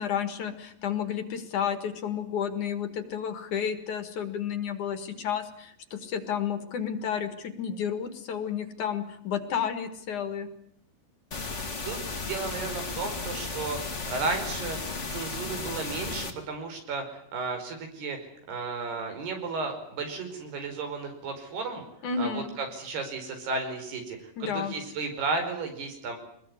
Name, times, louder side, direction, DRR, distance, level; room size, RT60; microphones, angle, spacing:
voice 1, 0.0-10.5 22.0-22.5 24.4-24.7, left 8 dB, 55° left, 9 dB, 3.0 m, -31 dB
sound 1, 11.3-16.3, left 4 dB, 25° left, 1.6 m, -34 dB
voice 2, 11.8-18.2 18.5-21.8 22.2-26.2, right 4 dB, 85° right, 6 dB, 7.0 m, -34 dB
24.0 x 21.0 x 9.7 m, 0.69 s
omnidirectional pair, 4.5 m